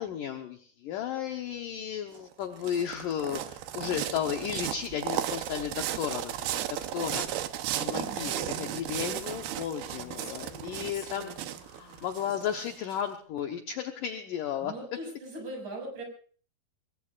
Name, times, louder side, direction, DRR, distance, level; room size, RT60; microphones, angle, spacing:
voice 1, 0.0-6.6 6.9-7.3 7.8-11.3 11.8-14.7, left 9 dB, 70° left, 4 dB, 2.2 m, -34 dB
sound 1, 2.1-13.0, right 12 dB, 75° right, 2.8 m, -35 dB
voice 2, 7.9-8.3 14.6-16.0, right 1 dB, 50° right, 1 dB, 7.8 m, -40 dB
Female speech woman speaking, 8.2-12.4, left 3 dB, 55° left, 4.7 m, -49 dB
26.5 x 21.0 x 2.5 m, 0.43 s
omnidirectional pair, 4.7 m